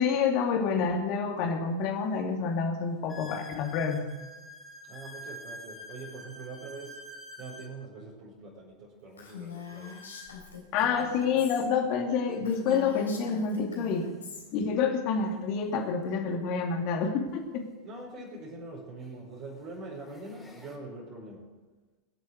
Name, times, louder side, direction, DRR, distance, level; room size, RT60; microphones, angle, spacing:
voice 1, 0.0-4.0 10.7-14.1 14.5-17.6, left 6 dB, 40° left, 2 dB, 2.7 m, -28 dB
sound 1, 1.4-1.5 2.1-2.2 3.1-7.7 9.7-11.3 12.3-12.4 12.7-12.8 13.6-13.7 15.9-16.0 18.1-18.2 19.0-19.3 19.8-20.8, left 1 dB, 5° left, 3.6 m, -47 dB
voice 2, 4.9-7.0 7.4-9.9 17.8-21.5, right 3 dB, 40° right, -5 dB, 5.1 m, -43 dB
Female speech woman speaking, 9.2-11.7 12.0-12.1 12.4-14.4, left 5 dB, 70° left, 3.7 m, -43 dB
24.5 x 8.3 x 6.4 m, 1.3 s
figure-of-eight pair, 90°, 0 cm